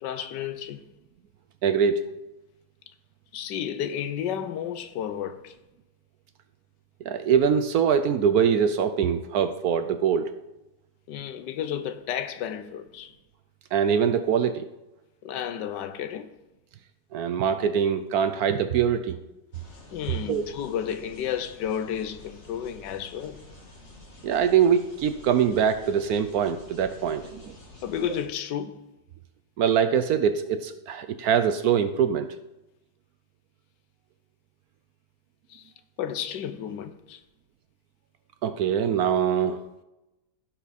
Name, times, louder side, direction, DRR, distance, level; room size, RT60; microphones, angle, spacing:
voice 1, 0.0-0.8 3.3-5.5 11.1-13.1 15.2-16.3 19.9-23.4 27.8-28.8 35.5-35.7 36.0-37.2, left 9 dB, 75° left, 1.3 m, -32 dB
voice 2, 1.6-2.0 7.0-10.4 13.7-14.7 17.1-19.2 20.3-20.4 24.2-27.5 29.6-32.3 38.4-39.6, right 7 dB, 70° right, 0.9 m, -23 dB
sound 1, 19.5-28.3, left 2 dB, 40° left, 2.1 m, -49 dB
16.0 x 5.9 x 4.1 m
omnidirectional pair, 1.9 m